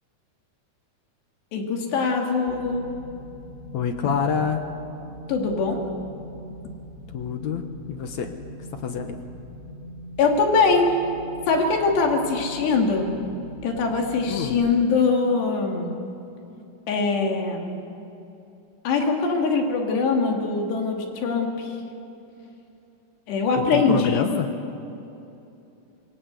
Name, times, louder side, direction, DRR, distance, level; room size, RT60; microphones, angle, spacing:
voice 1, 1.5-3.0 5.3-5.8 10.2-11.0 11.5-13.1 13.6-15.9 16.9-17.8 18.8-21.8 23.3-24.3, left 4 dB, 90° left, 2 dB, 4.7 m, -22 dB
sound 1, 2.5-14.5, equal, 5° left, 4.3 m, -42 dB
voice 2, 3.7-4.7 7.1-8.3 8.7-9.2 14.3-14.6 23.6-24.5, left 7 dB, 65° left, 6 dB, 1.9 m, -27 dB
26.5 x 21.5 x 8.3 m, 2.8 s
omnidirectional pair, 4.7 m